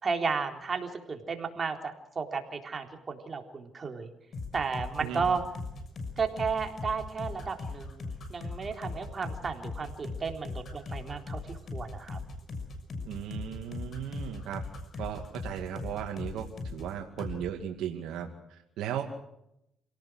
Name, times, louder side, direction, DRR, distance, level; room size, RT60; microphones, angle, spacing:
voice 1, 0.0-4.1 4.5-5.4 6.2-12.2, right 5 dB, 40° right, 4 dB, 3.8 m, -33 dB
sound 1, 4.3-16.9 17.2-17.4, left 3 dB, 50° left, 6.5 m, -39 dB
voice 2, 13.0-14.6 15.0-16.5 16.7-19.0, right 10 dB, 85° right, 2 dB, 2.3 m, -36 dB
28.0 x 18.0 x 6.4 m, 0.80 s
cardioid pair, 90°, 0 cm